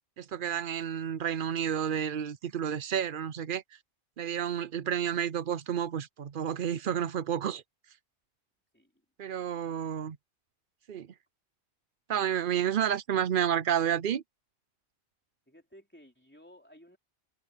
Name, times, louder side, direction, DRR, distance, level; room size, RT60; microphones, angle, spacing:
voice 1, 0.2-3.6 4.2-7.6 9.2-10.2 10.9-11.1 12.1-14.2, right 9 dB, 55° right, 0.8 m, -30 dB
voice 2, 8.7-9.0 9.4-9.8 12.1-12.5 15.5-17.0, equal, 10° left, 3.5 m, -57 dB
omnidirectional pair, 1.1 m